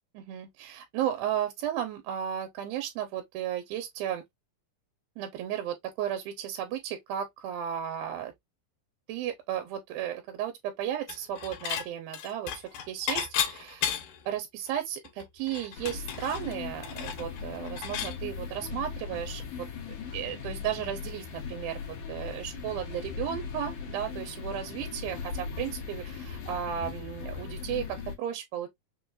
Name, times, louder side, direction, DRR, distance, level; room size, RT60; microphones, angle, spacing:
voice 1, 0.1-4.2 5.2-8.3 9.1-13.9 14.3-19.7 20.1-21.8 22.1-28.7, right 10 dB, 85° right, 2.5 m, -34 dB
Dishes pots and pans / Chink clink, 11.1-11.9 12.1-14.3 14.7-14.8 15.0-18.2, left 9 dB, 80° left, 2.7 m, -33 dB
sound 1, 15.7-28.2, left 6 dB, 65° left, 2.2 m, -39 dB
5.8 x 2.3 x 2.4 m
omnidirectional pair, 4.3 m